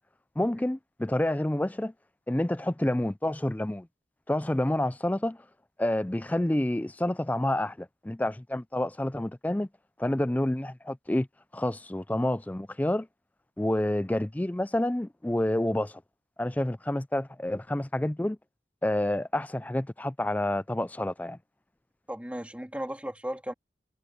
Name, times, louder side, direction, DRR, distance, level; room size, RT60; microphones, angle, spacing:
voice 1, 0.4-1.9 2.3-3.9 4.3-5.4 5.8-9.7 10.0-11.3 11.5-13.1 13.6-16.0 16.4-18.4 18.8-21.4, left 1 dB, 10° left, 0.3 m, -28 dB
voice 2, 22.1-23.5, equal, 5° right, 2.5 m, -36 dB
head